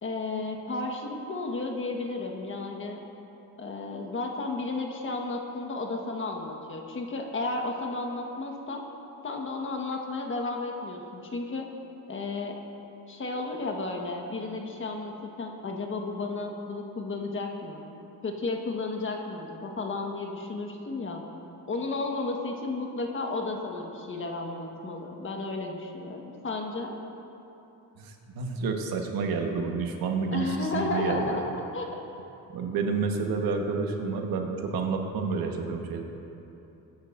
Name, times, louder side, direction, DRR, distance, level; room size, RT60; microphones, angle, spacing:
voice 1, 0.0-3.0 3.6-8.8 9.2-11.7 12.1-12.6 13.1-17.8 18.2-21.2 21.7-26.9 30.3-31.4 31.7-31.9, left 3 dB, 35° left, 1 dB, 1.5 m, -33 dB
voice 2, 28.0-31.4 32.5-36.0, right 4 dB, 70° right, 3 dB, 1.4 m, -29 dB
22.0 x 10.5 x 2.6 m, 3.0 s
cardioid pair, 120°, 36 cm